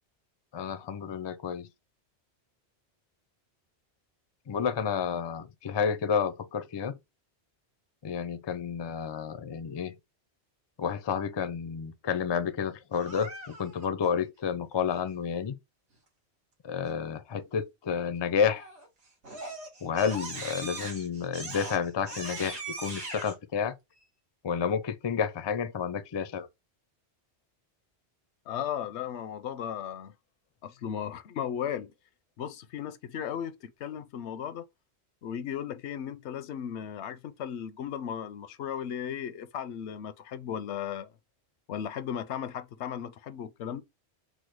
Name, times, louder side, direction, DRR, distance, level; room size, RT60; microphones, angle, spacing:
voice 1, 0.5-1.7 4.5-6.9 8.0-9.9 10.8-15.5 16.6-18.6 19.8-23.7 24.4-26.5, left 7 dB, 40° left, 0.3 m, -30 dB
Crying sobbing, 12.9-13.9 18.5-18.9 19.2-23.3, right 2 dB, 80° right, 1.9 m, -40 dB
voice 2, 28.5-30.1 30.6-31.9 32.4-34.6 35.2-41.1 41.7-43.8, left 9 dB, 85° left, 0.9 m, -36 dB
4.7 x 2.1 x 4.6 m
omnidirectional pair, 1.1 m